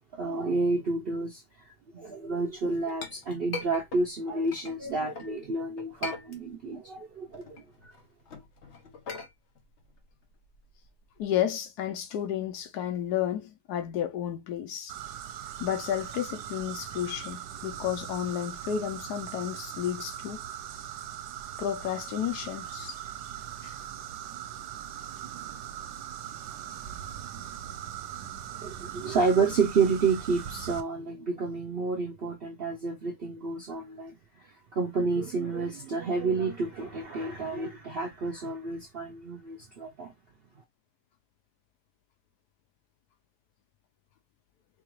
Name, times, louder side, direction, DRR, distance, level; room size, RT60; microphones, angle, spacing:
voice 1, 0.1-1.7 1.9-7.9 28.6-40.1, right 4 dB, 60° right, 0.6 m, -30 dB
Chink clink, 2.5-5.3 5.8-6.8 7.2-11.2, left 4 dB, 50° left, 1.0 m, -42 dB
voice 2, 11.2-14.9 15.6-20.4 21.6-23.0 23.6-23.7, left 10 dB, 75° left, 1.2 m, -32 dB
sound 1, 14.9-30.8, right 10 dB, 80° right, 1.2 m, -40 dB
4.4 x 2.4 x 3.1 m
omnidirectional pair, 1.8 m